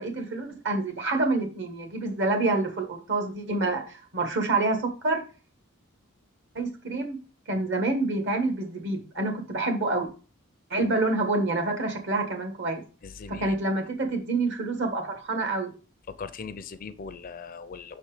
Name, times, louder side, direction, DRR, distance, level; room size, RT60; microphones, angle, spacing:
voice 1, 0.0-5.2 6.5-7.2 7.5-10.1 10.7-12.8 13.4-15.7, right 2 dB, 55° right, 1.6 m, -27 dB
voice 2, 13.0-13.6 16.1-18.0, left 5 dB, 40° left, 0.5 m, -39 dB
6.0 x 4.2 x 4.9 m
head